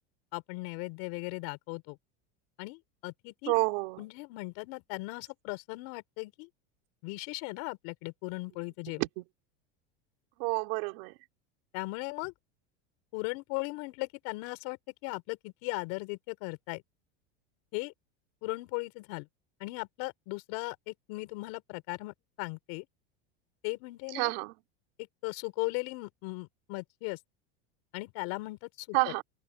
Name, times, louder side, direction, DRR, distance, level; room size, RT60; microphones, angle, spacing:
voice 1, 0.3-2.0 2.6-3.5 4.0-6.5 7.0-9.0 11.7-12.3 13.1-16.8 17.7-17.9 18.4-19.3 19.6-22.9 23.6-24.3 25.0-27.2 27.9-29.1, left 27 dB, 55° left, 6.1 m, -38 dB
voice 2, 3.5-4.0 9.0-9.1 10.4-11.1 24.1-24.5 28.9-29.2, right 28 dB, 65° right, 4.4 m, -29 dB
supercardioid pair, 160°, 32 cm